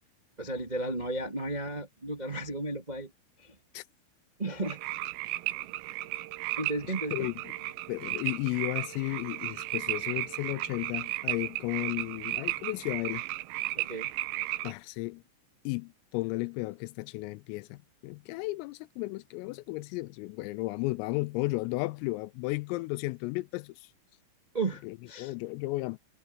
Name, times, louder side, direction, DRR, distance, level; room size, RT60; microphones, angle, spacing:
voice 1, 0.4-3.1 3.4-3.5 4.4-5.0 6.6-7.3 13.7-14.1 24.5-25.3, right 2 dB, 30° right, 0.7 m, -34 dB
sound 1, 4.6-14.7, right 18 dB, 85° right, 3.5 m, -35 dB
voice 2, 7.9-13.2 14.6-15.2 15.7-23.8 24.8-26.0, left 22 dB, 85° left, 3.2 m, -34 dB
omnidirectional pair, 6.0 m